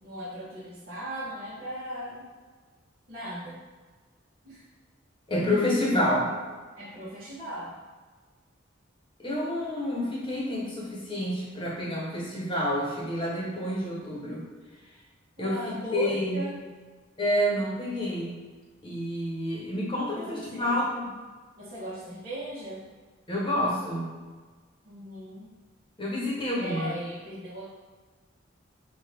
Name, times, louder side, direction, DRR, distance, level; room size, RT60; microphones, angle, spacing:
voice 1, 0.0-2.3 3.1-3.6 4.4-4.6 6.8-7.8 15.4-16.5 20.1-20.7 21.6-22.8 24.8-25.5 26.6-27.7, right 1 dB, 50° right, -10 dB, 1.3 m, -37 dB
voice 2, 5.3-6.3 9.2-14.4 15.4-16.4 17.2-18.4 18.8-21.1 23.3-24.1 26.0-26.9, left 1 dB, 25° left, -4 dB, 1.1 m, -28 dB
5.8 x 2.5 x 3.5 m, 1.4 s
head